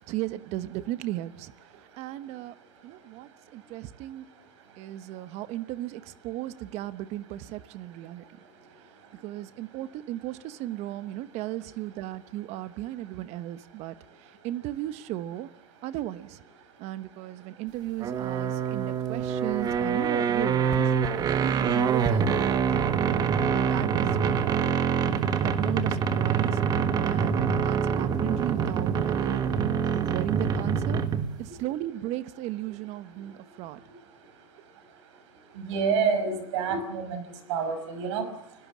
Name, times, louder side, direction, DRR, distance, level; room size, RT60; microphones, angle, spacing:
voice 1, 0.0-1.5 2.0-2.5 2.8-4.3 4.8-8.2 9.2-13.9 14.2-15.5 15.8-16.4 16.8-20.9 21.4-22.9 23.5-24.6 25.4-26.6 27.0-31.0 31.4-33.8, right 14 dB, 45° right, 14 dB, 1.1 m, -35 dB
sound 1, 18.0-31.4, right 7 dB, 25° right, 1.4 m, -25 dB
voice 2, 35.6-37.2 37.5-38.3, right 5 dB, 70° right, 10 dB, 5.6 m, -27 dB
30.0 x 17.5 x 7.4 m, 0.80 s
supercardioid pair, 140°, 16 cm